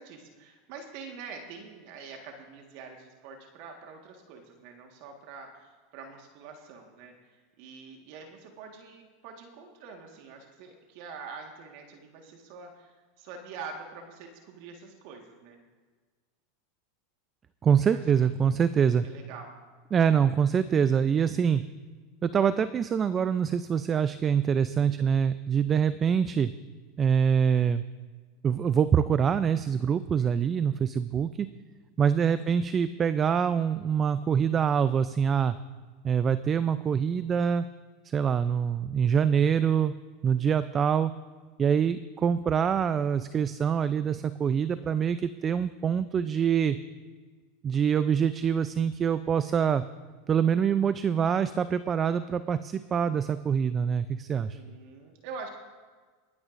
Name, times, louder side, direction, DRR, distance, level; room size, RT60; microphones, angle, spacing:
voice 1, 0.0-15.6 17.9-18.0 19.0-19.5 24.7-25.1 40.3-40.6 54.3-55.5, right 5 dB, 60° right, 2 dB, 1.6 m, -45 dB
voice 2, 17.6-19.1 19.9-21.6 22.2-26.5 27.0-27.8 28.4-31.5 32.0-35.6 36.0-37.7 38.0-39.9 40.2-41.1 41.6-46.8 47.6-49.8 50.3-54.6, right 7 dB, 30° right, 13 dB, 0.4 m, -25 dB
22.0 x 9.4 x 2.6 m, 1.4 s
hypercardioid pair, 105°, 0 cm